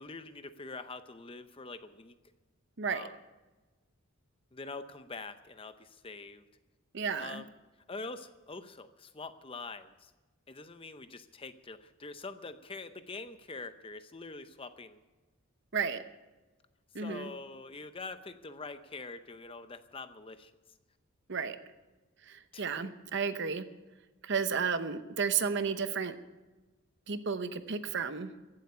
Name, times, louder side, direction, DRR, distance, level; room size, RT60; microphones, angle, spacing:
voice 1, 0.0-2.1 2.8-3.2 4.5-6.4 7.2-7.5 7.9-10.1 10.5-15.0 17.0-20.5 22.5-22.6, left 3 dB, 25° left, 11 dB, 0.7 m, -44 dB
voice 2, 2.8-3.1 6.9-7.4 15.7-16.0 16.9-17.3 21.3-21.6 22.3-23.7 24.2-26.2 27.1-28.3, right 6 dB, 55° right, 11 dB, 0.8 m, -32 dB
15.5 x 8.1 x 9.6 m, 1.2 s
head